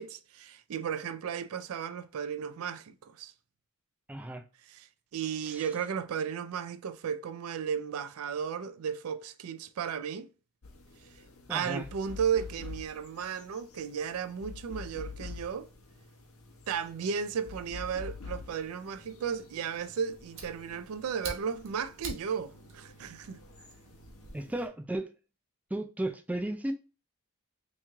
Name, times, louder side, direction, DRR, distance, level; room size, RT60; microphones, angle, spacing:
voice 1, 0.0-3.3 4.6-10.3 11.5-15.7 16.7-23.4, right 7 dB, 85° right, 0.4 m, -34 dB
voice 2, 4.1-4.4 5.5-5.6 11.5-11.8 24.3-25.1 25.7-26.7, right 1 dB, 5° right, 0.3 m, -34 dB
sound 1, 10.6-24.7, left 4 dB, 80° left, 0.8 m, -48 dB
Fire, 19.9-24.3, right 3 dB, 65° right, 0.9 m, -46 dB
3.0 x 2.8 x 3.4 m
head